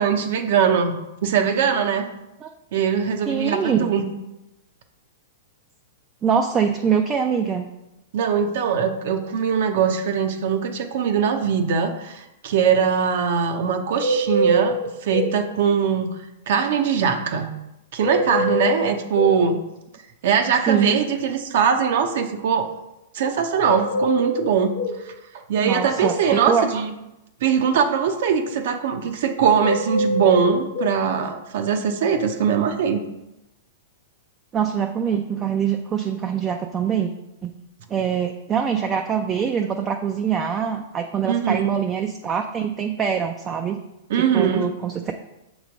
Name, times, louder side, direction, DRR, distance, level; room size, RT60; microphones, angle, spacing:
voice 1, 0.0-2.0 2.7-4.1 8.1-14.8 15.0-16.1 16.5-17.5 17.9-19.6 20.2-22.7 23.1-24.7 25.0-25.1 25.5-26.9 27.4-33.0 41.2-41.7 44.1-44.6, right 7 dB, 65° right, 6 dB, 0.7 m, -21 dB
voice 2, 3.3-3.9 6.2-7.7 20.7-21.0 25.6-26.6 34.5-37.1 37.4-37.5 37.9-43.8 44.2-45.0, right 7 dB, 20° right, 4 dB, 0.3 m, -23 dB
sound 1, 14.0-15.4 18.0-19.4 23.6-25.0 29.6-31.0, equal, 40° left, 0.8 m, -24 dB
6.4 x 3.1 x 5.1 m, 0.93 s
hypercardioid pair, 145°, 0 cm